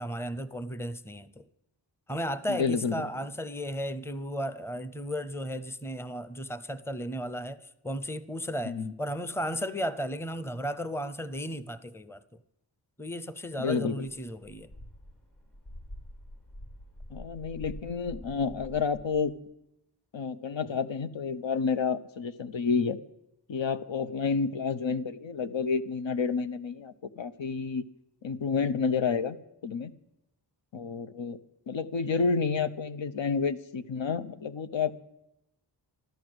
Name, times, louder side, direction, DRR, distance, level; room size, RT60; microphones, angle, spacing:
voice 1, 0.0-1.4 2.1-12.2 13.0-14.7, equal, 5° left, 0.6 m, -35 dB
voice 2, 2.5-3.0 8.6-8.9 13.6-14.1 17.1-19.3 20.1-23.0 23.5-27.9 28.2-29.4 29.6-29.9 30.7-31.4 31.7-34.9, left 5 dB, 85° left, 0.9 m, -30 dB
sound 1, 14.0-19.2, left 1 dB, 45° left, 3.6 m, -46 dB
13.0 x 13.0 x 7.9 m
wide cardioid pair, 85°, 44 cm